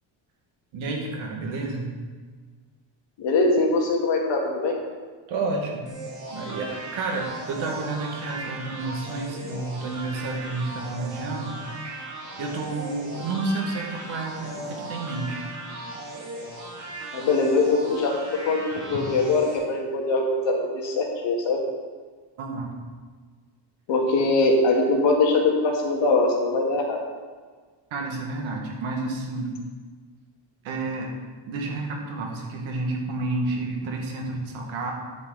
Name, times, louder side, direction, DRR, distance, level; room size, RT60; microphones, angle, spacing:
voice 1, 0.7-1.9 5.3-5.8 6.3-11.6 12.4-15.4 18.9-19.0 22.4-22.7 27.9-29.6 30.6-31.1 31.5-34.9, right 3 dB, 75° right, 0 dB, 1.9 m, -30 dB
voice 2, 3.2-4.7 17.1-18.1 18.5-18.6 18.9-21.6 23.9-27.0, left 3 dB, 65° left, 0 dB, 1.8 m, -22 dB
sound 1, 5.9-19.6, right 2 dB, 40° right, 2.5 m, -38 dB
9.8 x 7.9 x 3.9 m, 1.5 s
cardioid pair, 170°, 48 cm